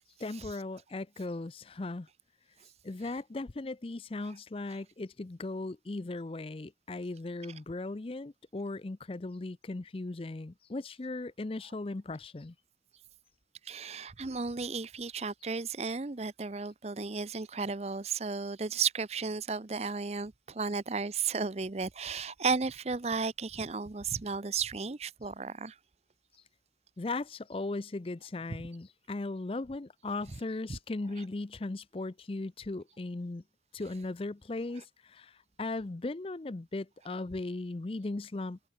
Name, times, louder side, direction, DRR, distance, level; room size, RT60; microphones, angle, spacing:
voice 1, 0.2-2.1 2.8-12.5 27.0-33.4 33.7-35.3 35.6-38.6, left 2 dB, 30° left, 0.5 m, -37 dB
voice 2, 13.6-25.8 30.7-30.8, right 5 dB, 35° right, 0.6 m, -34 dB
head